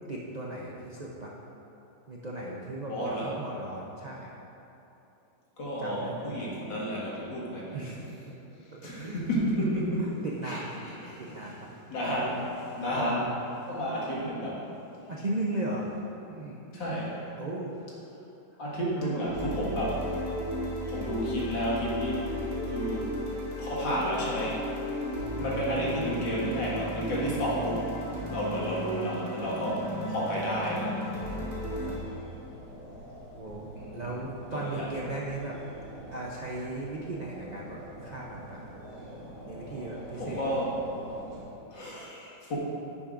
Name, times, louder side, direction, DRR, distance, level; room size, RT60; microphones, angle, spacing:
voice 1, 0.1-1.3 2.1-4.3 5.8-6.4 7.7-8.4 8.7-9.2 10.0-10.9 11.2-11.7 15.1-15.9 16.3-17.0 17.4-17.7 18.9-19.2 25.4-25.6 31.8-32.2 33.4-35.6 36.1-38.7 39.5-40.4, right 2 dB, 85° right, -4 dB, 0.3 m, -37 dB
voice 2, 2.9-3.3 5.6-7.8 8.8-11.5 11.9-13.4 13.7-14.6 16.7-17.2 18.6-20.0 20.9-22.2 22.7-23.1 23.6-24.6 25.4-27.9 28.3-31.1 33.8-34.0 34.5-34.9 40.2-40.7 41.7-42.6, equal, 85° left, -6 dB, 2.6 m, -31 dB
sound 1, 19.3-32.0, equal, 50° right, 2.5 m, -34 dB
sound 2, 29.3-41.5, right 1 dB, 65° right, 3.0 m, -46 dB
10.5 x 10.0 x 2.6 m, 2.9 s
omnidirectional pair, 2.0 m